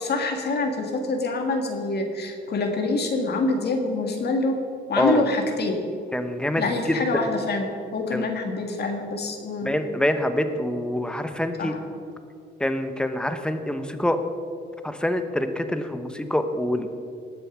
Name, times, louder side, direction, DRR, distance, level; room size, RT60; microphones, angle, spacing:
voice 1, 0.0-4.6 4.9-5.8 6.6-9.7 11.6-11.8, left 3 dB, 55° left, 3 dB, 1.8 m, -26 dB
voice 2, 6.1-6.6 8.1-8.2 9.6-11.7 12.6-14.2 14.8-16.9, left 1 dB, 5° left, 8 dB, 1.0 m, -25 dB
19.5 x 6.9 x 6.1 m, 2.4 s
cardioid pair, 90°, 20 cm